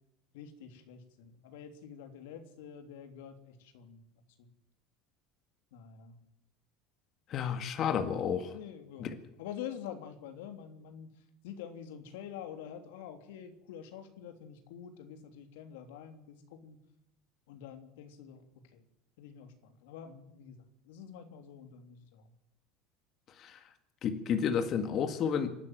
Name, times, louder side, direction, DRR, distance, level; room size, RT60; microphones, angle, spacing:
voice 1, 0.3-4.0 4.4-4.5 5.7-6.2 8.5-11.1 11.4-16.8 17.5-18.4 18.7-18.8 19.2-22.3, left 8 dB, 90° left, 7 dB, 3.3 m, -47 dB
voice 2, 7.3-8.5 9.0-9.1 23.4-23.6 24.0-25.5, left 7 dB, 35° left, 8 dB, 1.9 m, -31 dB
27.0 x 12.5 x 9.3 m, 0.80 s
cardioid pair, 155°, 0 cm